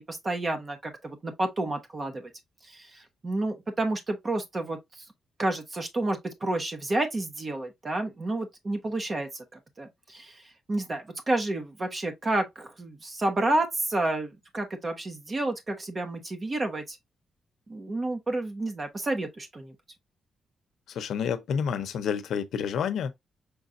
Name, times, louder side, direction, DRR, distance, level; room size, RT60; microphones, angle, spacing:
voice 1, 0.0-2.3 2.7-4.8 5.4-10.4 10.7-17.0 17.7-19.7, right 2 dB, 25° right, 1.1 m, -30 dB
voice 2, 20.9-23.1, left 7 dB, 75° left, 0.8 m, -29 dB
6.3 x 3.2 x 2.6 m
wide cardioid pair, 170°, 0 cm